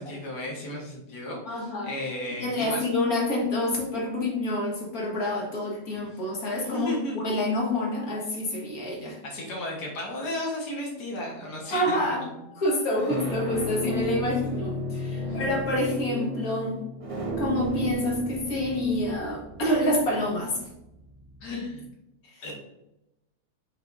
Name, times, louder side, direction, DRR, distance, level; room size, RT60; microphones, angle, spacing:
voice 1, 0.0-2.8 6.7-7.3 9.2-12.3 13.0-13.1 15.2-15.4 21.4-21.8 22.4-22.5, left 1 dB, 80° left, -2 dB, 1.9 m, -34 dB
voice 2, 1.4-1.9 2.4-9.2 11.7-12.3 12.6-16.8 17.4-20.6 21.5-21.6 22.3-22.4, left 1 dB, 60° left, -2 dB, 2.1 m, -27 dB
sound 1, 11.6-12.1 12.8-21.5, equal, 25° right, 0.8 m, -34 dB
6.7 x 5.7 x 2.6 m, 0.91 s
omnidirectional pair, 1.8 m